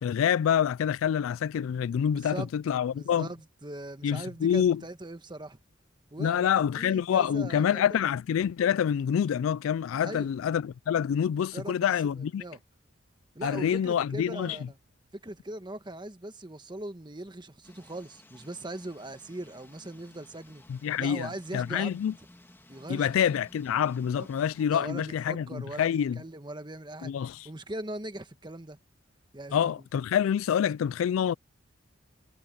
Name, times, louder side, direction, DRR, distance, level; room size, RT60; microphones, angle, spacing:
voice 1, 0.0-3.3 4.0-4.8 6.2-12.4 13.4-14.6 20.7-22.1 22.9-26.2 27.0-27.4 29.5-31.3, left 8 dB, 75° left, 0.3 m, -27 dB
voice 2, 2.1-2.5 2.9-5.6 6.1-8.0 10.0-10.3 11.5-11.8 12.2-12.6 13.3-14.8 15.1-20.6 21.0-22.0 22.7-23.4 24.2-24.3 24.7-27.1 27.4-28.8 29.3-29.7, right 1 dB, 20° right, 1.3 m, -40 dB
sound 1, 17.6-24.7, left 1 dB, 10° left, 1.6 m, -56 dB
head